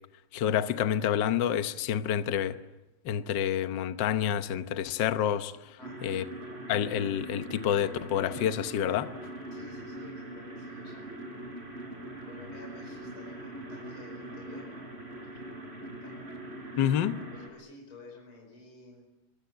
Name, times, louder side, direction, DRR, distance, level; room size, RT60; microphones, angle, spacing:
voice 1, 0.3-2.6 3.0-6.2 6.7-9.1 16.8-17.2, left 9 dB, 80° left, 1.0 m, -28 dB
voice 2, 5.8-6.2 9.5-11.1 12.2-14.7 15.1-16.2 17.3-19.1, left 3 dB, 40° left, 5.8 m, -51 dB
sound 1, 5.8-17.5, right 1 dB, 20° right, 4.9 m, -42 dB
25.5 x 22.5 x 9.2 m
omnidirectional pair, 3.5 m